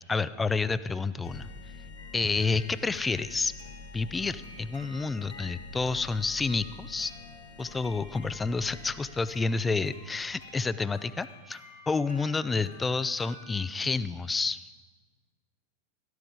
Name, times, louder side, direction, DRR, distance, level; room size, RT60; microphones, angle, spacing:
voice 1, 0.1-1.5 2.1-3.5 3.9-7.1 7.6-14.6, left 4 dB, 15° left, 15 dB, 0.4 m, -29 dB
sound 1, 1.2-10.6, left 4 dB, 45° left, 1.9 m, -48 dB
sound 2, 2.0-13.7, left 1 dB, 85° left, 1.8 m, -52 dB
13.5 x 12.5 x 3.8 m, 1.3 s
figure-of-eight pair, 90°, 0 cm